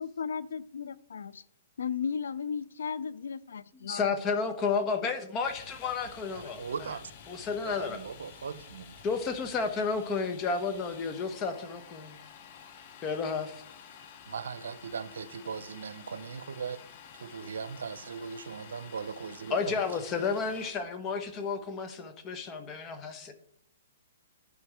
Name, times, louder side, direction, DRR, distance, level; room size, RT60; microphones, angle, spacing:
voice 1, 0.0-1.4 1.8-4.2, left 6 dB, 85° left, 0.4 m, -35 dB
voice 2, 3.8-6.6 7.3-8.0 9.0-12.2 13.0-13.6 19.5-23.3, left 5 dB, 20° left, 1.0 m, -32 dB
Domestic sounds home sounds, 5.4-20.7, left 7 dB, 40° left, 1.0 m, -51 dB
voice 3, 6.3-9.0 14.3-16.8 17.1-19.8, right 6 dB, 85° right, 0.7 m, -39 dB
11.0 x 5.2 x 4.9 m
hypercardioid pair, 150°, 0 cm